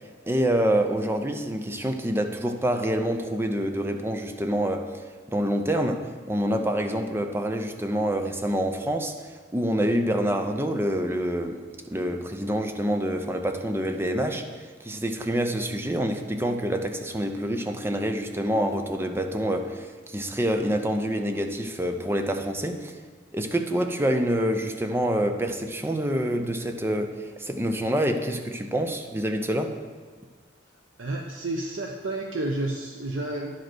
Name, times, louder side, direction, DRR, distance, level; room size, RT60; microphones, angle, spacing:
voice 1, 0.3-4.9 5.3-9.1 9.5-11.6 11.9-14.5 14.8-22.9 23.3-29.8, equal, 10° right, 6 dB, 0.6 m, -26 dB
voice 2, 31.0-33.5, right 2 dB, 85° right, 1 dB, 0.7 m, -30 dB
10.5 x 5.2 x 6.1 m, 1.5 s
head